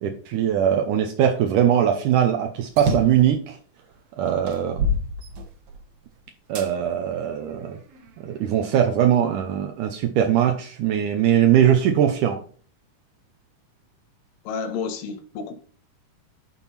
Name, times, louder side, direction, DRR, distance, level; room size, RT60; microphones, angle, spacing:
voice 1, 0.0-3.6 4.2-4.8 6.5-7.8 8.2-12.4, right 9 dB, 75° right, 4 dB, 2.3 m, -21 dB
sound 1, 2.7-3.3 3.9-4.0 4.5-5.9 6.6-6.7 7.4-8.5, equal, 60° right, 2.0 m, -27 dB
voice 2, 14.4-15.5, left 5 dB, 80° left, 6 dB, 2.9 m, -30 dB
11.0 x 4.5 x 4.2 m, 0.43 s
omnidirectional pair, 3.8 m